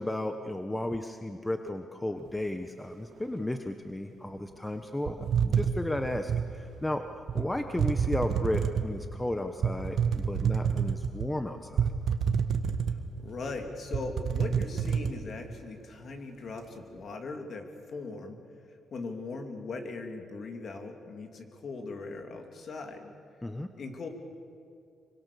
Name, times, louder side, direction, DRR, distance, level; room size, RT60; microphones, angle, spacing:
voice 1, 0.0-11.9 23.4-23.7, left 1 dB, 10° left, 7 dB, 1.0 m, -34 dB
sound 1, 5.1-6.5 7.3-7.4 7.8-8.9 9.6-11.3 11.8-13.2 13.5-13.6 13.9-15.1, right 7 dB, 55° right, 1.6 m, -28 dB
voice 2, 13.2-18.4 18.9-23.1 23.8-24.1, left 3 dB, 50° left, 4 dB, 3.0 m, -39 dB
26.0 x 24.0 x 6.9 m, 2.4 s
cardioid pair, 120°, 0 cm